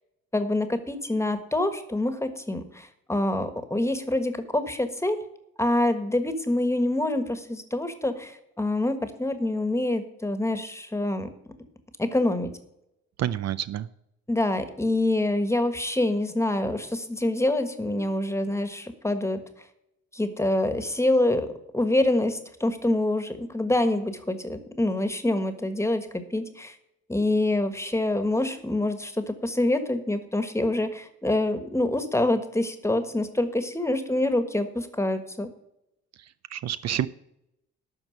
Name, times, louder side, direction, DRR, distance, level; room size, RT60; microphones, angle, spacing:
voice 1, 0.3-5.2 5.6-11.3 12.0-12.5 14.3-19.4 20.1-21.5 21.7-26.7 27.1-35.5, left 1 dB, 10° left, 9 dB, 1.4 m, -26 dB
voice 2, 13.2-13.9 36.2-37.1, right 11 dB, 60° right, 15 dB, 0.5 m, -29 dB
12.5 x 4.5 x 7.9 m, 0.82 s
cardioid pair, 90°, 30 cm